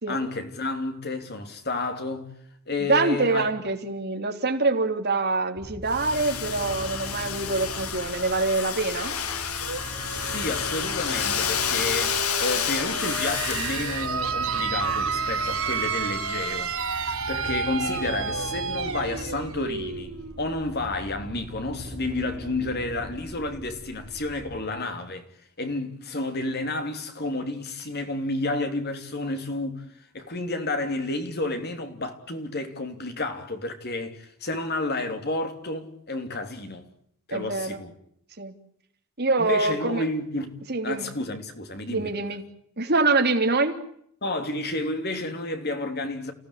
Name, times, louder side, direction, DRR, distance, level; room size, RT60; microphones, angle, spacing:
voice 1, 0.1-2.3 2.7-3.5 10.0-16.7 17.3-25.3 25.6-29.8 30.1-36.9 37.3-37.9 39.4-42.2 44.2-46.3, left 2 dB, 45° left, 3.2 m, -31 dB
voice 2, 2.9-9.1 37.3-37.8 38.4-38.5 39.2-40.0 40.7-41.1 41.9-42.4 42.8-43.8, right 3 dB, 45° right, 3.3 m, -25 dB
sound 1, 5.6-24.6, equal, 30° right, 5.9 m, -41 dB
Domestic sounds home sounds, 5.9-14.1, left 8 dB, 75° left, 2.1 m, -30 dB
sound 2, 9.6-21.1, right 5 dB, 70° right, 4.7 m, -31 dB
30.0 x 17.0 x 10.0 m
head